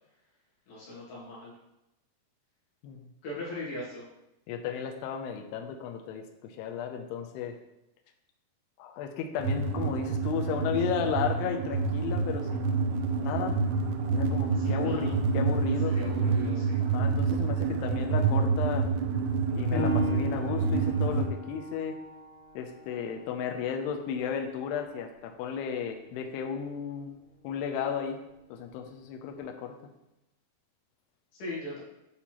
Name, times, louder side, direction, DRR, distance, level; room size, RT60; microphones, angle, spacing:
voice 1, 0.7-1.5 3.2-4.1 14.5-15.1 15.8-16.8 31.3-31.8, left 1 dB, 60° left, -6 dB, 3.1 m, -39 dB
voice 2, 4.5-7.6 8.8-12.9 13.2-13.6 14.1-16.0 16.8-18.9 19.6-22.0 22.6-27.1 27.4-28.2 28.5-29.7, left 7 dB, 90° left, 3 dB, 2.6 m, -34 dB
sound 1, 9.4-21.3, right 4 dB, 85° right, 2.7 m, -28 dB
Piano, 19.7-24.9 25.4-25.5 26.1-26.6, right 1 dB, 65° right, 3.0 m, -39 dB
8.6 x 4.2 x 2.9 m, 0.90 s
omnidirectional pair, 4.7 m